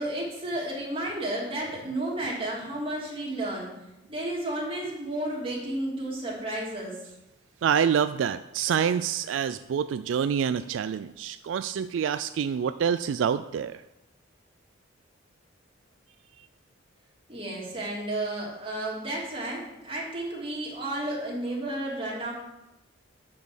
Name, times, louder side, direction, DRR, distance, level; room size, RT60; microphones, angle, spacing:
voice 1, 0.0-3.7 4.1-7.0 17.3-22.3, right 1 dB, 30° right, -4 dB, 3.0 m, -32 dB
voice 2, 7.6-13.8, right 7 dB, 80° right, 13 dB, 0.3 m, -27 dB
8.7 x 6.2 x 6.4 m, 0.94 s
head